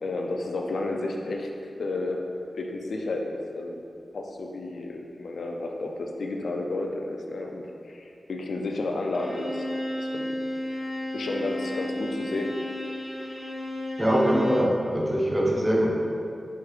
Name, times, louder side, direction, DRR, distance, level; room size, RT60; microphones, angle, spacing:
voice 1, 0.0-1.5 1.8-3.8 4.1-9.6 10.0-10.4 10.7-10.9 11.1-12.6, left 2 dB, 80° left, 1 dB, 0.3 m, -32 dB
Bowed string instrument, 9.1-14.8, left 1 dB, 15° left, 0.8 m, -33 dB
voice 2, 14.0-15.9, equal, 20° right, -3 dB, 0.7 m, -22 dB
4.6 x 3.1 x 2.4 m, 2.5 s
cardioid pair, 55°, 0 cm